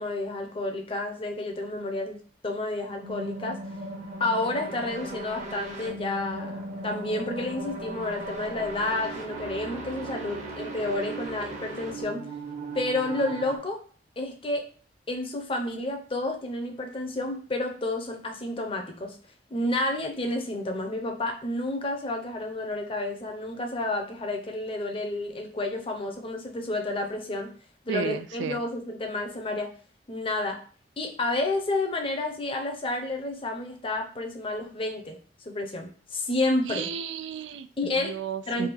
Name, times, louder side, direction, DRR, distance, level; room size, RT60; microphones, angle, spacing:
voice 1, 0.0-3.6 4.2-12.2 12.7-13.8 14.2-14.7 15.1-19.2 19.5-27.5 27.8-29.7 30.1-30.6 31.0-35.2 35.4-36.9 37.8-38.1 38.5-38.7, left 2 dB, 30° left, 3 dB, 0.6 m, -30 dB
reverse phase quantum, 3.0-13.6, right 2 dB, 40° right, 0.8 m, -37 dB
voice 2, 27.9-28.6 36.6-38.7, right 6 dB, 90° right, 11 dB, 0.4 m, -33 dB
3.4 x 2.3 x 4.4 m, 0.41 s
head